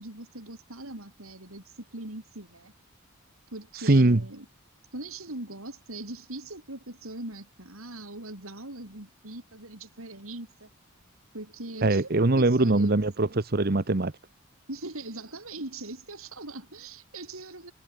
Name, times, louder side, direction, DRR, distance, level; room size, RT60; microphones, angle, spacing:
voice 1, 0.0-2.7 3.5-4.4 4.9-10.7 11.3-13.0 14.7-17.7, right 2 dB, 80° right, 4.8 m, -41 dB
voice 2, 3.8-4.2 11.8-14.1, right 2 dB, 45° right, 1.0 m, -22 dB
head